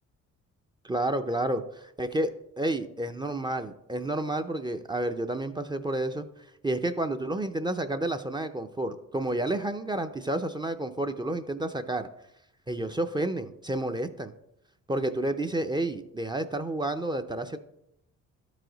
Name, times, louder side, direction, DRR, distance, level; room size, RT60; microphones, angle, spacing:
voice 1, 0.8-6.2 6.6-12.1 12.7-14.3 14.9-17.6, right 1 dB, 15° right, 7 dB, 0.5 m, -30 dB
11.5 x 4.9 x 3.9 m, 0.81 s
cardioid pair, 90°, 30 cm